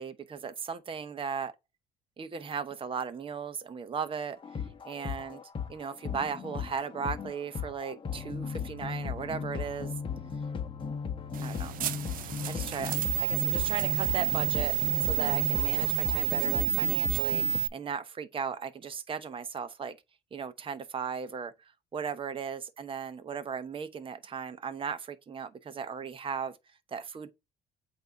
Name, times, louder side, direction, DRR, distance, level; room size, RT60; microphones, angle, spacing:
voice 1, 0.0-1.5 2.2-4.4 4.8-5.4 5.7-9.9 11.4-11.7 12.2-14.8 15.0-17.4 17.7-20.0 20.3-21.5 21.9-26.6 26.9-27.3, right 6 dB, 30° right, 0.9 m, -37 dB
sound 1, 4.4-17.6, left 6 dB, 30° left, 1.0 m, -37 dB
sound 2, 11.3-17.7, right 9 dB, 55° right, 0.5 m, -29 dB
8.1 x 2.8 x 4.6 m
cardioid pair, 110°, 17 cm